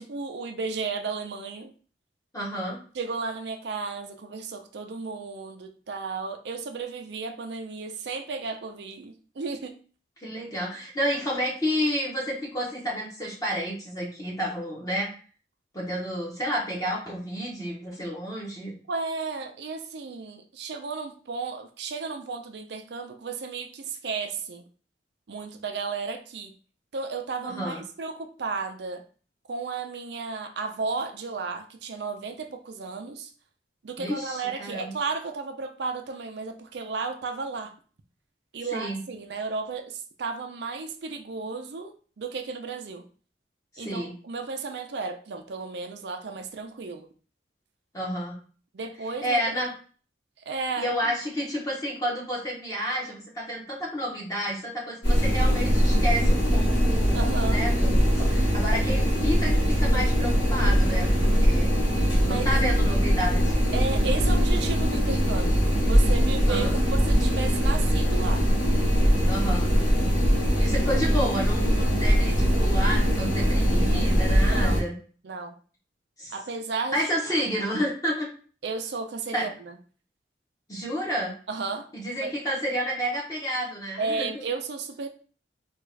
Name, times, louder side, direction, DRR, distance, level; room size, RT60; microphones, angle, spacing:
voice 1, 0.0-1.7 2.9-9.8 18.9-24.7 25.3-26.5 26.9-29.0 29.5-33.3 33.8-37.7 38.5-43.1 43.8-47.1 48.7-49.4 50.5-51.1 57.1-57.7 60.8-61.1 62.2-62.6 63.7-68.4 74.5-74.9 75.2-75.5 76.3-77.1 78.6-79.8 81.5-81.9 82.2-82.3 84.0-85.1, right 4 dB, 70° right, 5 dB, 0.5 m, -34 dB
voice 2, 2.3-2.8 10.2-15.1 15.7-18.7 27.4-27.8 34.0-34.9 38.7-39.0 43.7-44.1 47.9-48.4 49.2-49.7 50.8-57.2 57.5-61.7 62.3-63.6 66.5-66.8 69.3-69.7 70.6-74.9 76.2-76.3 76.9-78.3 79.3-79.5 80.7-81.3 81.9-84.4, equal, 20° left, -4 dB, 0.9 m, -30 dB
sound 1, 55.0-74.8, equal, 65° left, 1.8 m, -22 dB
3.5 x 2.4 x 3.2 m, 0.40 s
head